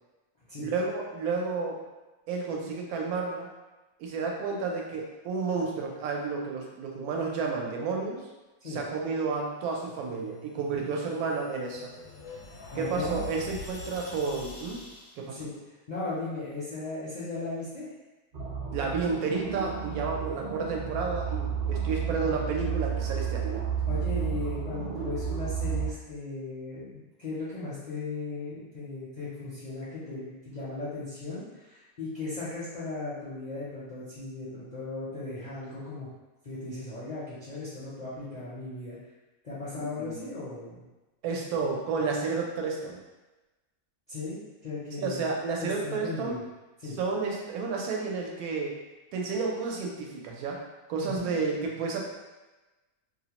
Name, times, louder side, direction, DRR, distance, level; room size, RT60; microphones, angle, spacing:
voice 1, 0.6-1.8 2.3-3.5 4.0-8.2 8.6-11.9 12.8-14.8 15.2-15.4 18.7-23.6 40.0-40.3 41.2-43.0 45.0-46.4 47.0-48.8 49.1-50.6 50.9-52.0, right 4 dB, 80° right, 0 dB, 1.0 m, -31 dB
sound 1, 10.8-15.3, left 2 dB, 75° left, 1.0 m, -43 dB
voice 2, 12.7-13.2 15.2-15.5 15.9-17.9 23.9-36.1 36.4-39.0 39.4-40.8 44.1-45.3 45.6-46.4 46.8-47.0 51.0-51.3, left 3 dB, 50° left, -11 dB, 0.5 m, -37 dB
sound 2, 18.3-25.9, right 7 dB, 50° right, 0.5 m, -32 dB
2.6 x 2.0 x 2.9 m, 1.1 s
omnidirectional pair, 1.6 m